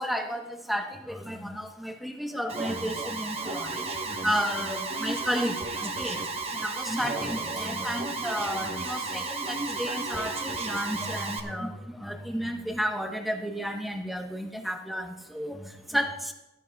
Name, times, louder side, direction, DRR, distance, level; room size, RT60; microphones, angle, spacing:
voice 1, 0.0-3.9 4.2-16.3, equal, ahead, 3 dB, 1.0 m, -32 dB
Alarm, 2.5-11.4, right 3 dB, 30° right, 1.1 m, -33 dB
17.0 x 13.0 x 2.3 m, 0.97 s
head